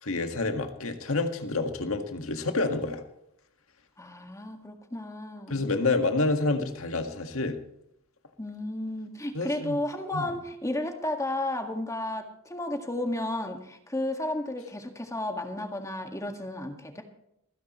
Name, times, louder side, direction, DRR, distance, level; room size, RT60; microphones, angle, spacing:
voice 1, 0.0-3.0 5.5-7.6 9.3-9.8 10.1-10.2, left 3 dB, 70° left, 6 dB, 1.8 m, -28 dB
voice 2, 4.0-5.7 8.4-17.0, left 1 dB, 15° left, 4 dB, 1.8 m, -33 dB
26.5 x 10.0 x 3.1 m, 0.78 s
head